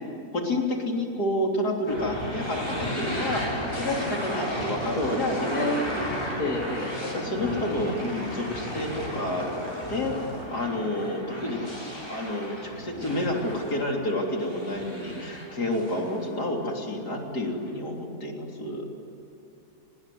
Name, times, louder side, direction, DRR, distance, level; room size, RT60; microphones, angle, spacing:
voice 1, 0.3-6.5 7.0-9.5 9.9-11.6 12.1-18.9, left 1 dB, 85° left, 1 dB, 4.0 m, -30 dB
sound 1, 1.9-16.8, equal, 15° left, 7.3 m, -34 dB
voice 2, 5.0-5.9 6.4-6.9, left 1 dB, 70° left, -1 dB, 2.9 m, -28 dB
25.0 x 20.0 x 9.5 m, 2.9 s
omnidirectional pair, 1.7 m